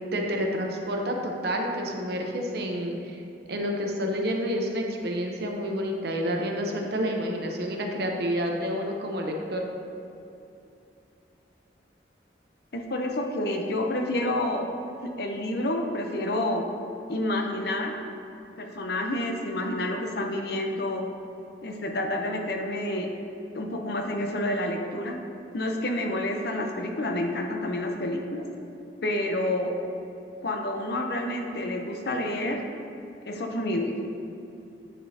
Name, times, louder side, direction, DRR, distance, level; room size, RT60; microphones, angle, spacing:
voice 1, 0.1-3.2 3.5-9.7, equal, 60° right, 1 dB, 0.8 m, -29 dB
voice 2, 12.7-14.7 15.0-16.6 17.1-18.0 18.6-21.1 21.6-23.1 23.5-25.2 25.5-28.5 29.0-29.7 30.4-32.6 33.3-34.0, left 1 dB, 60° left, 3 dB, 0.7 m, -29 dB
9.6 x 5.1 x 2.8 m, 2.8 s
head